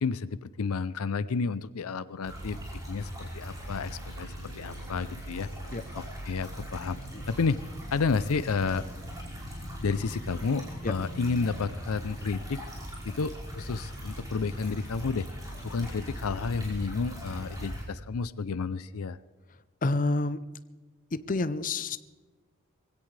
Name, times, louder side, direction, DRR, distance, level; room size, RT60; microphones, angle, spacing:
voice 1, 0.0-2.6 2.9-5.5 5.9-7.0 7.3-7.6 7.9-8.8 9.8-12.6 13.0-15.3 15.6-19.2, left 4 dB, 80° left, 16 dB, 0.5 m, -31 dB
sound 1, 2.2-17.8, equal, 15° right, 5.2 m, -40 dB
voice 2, 19.8-20.4 21.1-22.0, left 2 dB, 40° left, 12 dB, 0.6 m, -28 dB
22.5 x 17.0 x 3.3 m, 1.3 s
head